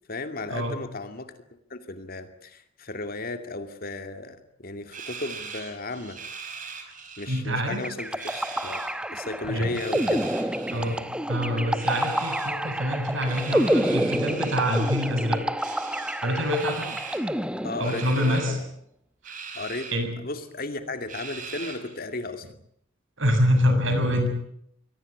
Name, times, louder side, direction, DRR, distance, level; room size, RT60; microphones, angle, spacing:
voice 1, 0.1-1.3 1.7-6.2 7.2-8.8 9.1-10.3 17.6-18.6 19.5-19.9 20.2-22.5, left 2 dB, 45° left, 8 dB, 2.5 m, -35 dB
sound 1, 4.9-7.4 7.7-8.9 9.6-11.0 11.8-12.5 13.3-15.1 15.6-17.3 17.8-18.5 19.2-20.0 20.4-20.5 21.1-22.0, right 5 dB, 40° right, 5.1 m, -40 dB
voice 2, 7.3-7.8 9.5-9.7 10.7-11.0 11.3-15.4 16.2-16.9 17.8-18.6 19.2-19.4 19.9-20.1 23.2-24.3, equal, 70° right, 6 dB, 7.5 m, -25 dB
sound 2, 7.8-18.3, right 1 dB, 5° right, 0.9 m, -28 dB
24.0 x 18.0 x 9.6 m, 0.70 s
head